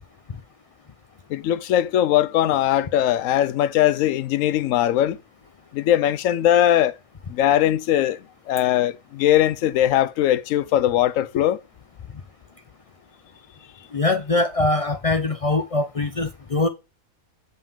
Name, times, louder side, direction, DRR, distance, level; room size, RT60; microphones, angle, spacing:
voice 1, 1.3-5.2 5.7-6.9 7.3-8.2 8.5-11.6, left 12 dB, 75° left, 1.0 m, -20 dB
voice 2, 13.9-16.7, left 2 dB, 55° left, 0.4 m, -22 dB
7.0 x 5.5 x 3.5 m
omnidirectional pair, 1.4 m